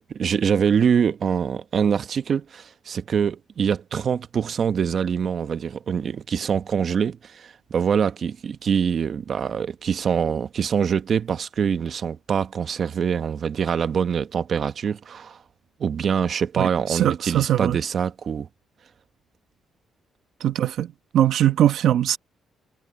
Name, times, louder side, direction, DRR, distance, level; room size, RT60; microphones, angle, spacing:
voice 1, 0.1-15.4 15.8-18.5, right 7 dB, 55° right, 1.1 m, -24 dB
voice 2, 16.6-17.8 20.4-20.9 21.1-22.2, right 11 dB, 75° right, 1.4 m, -21 dB
cardioid pair, 90°, 0 cm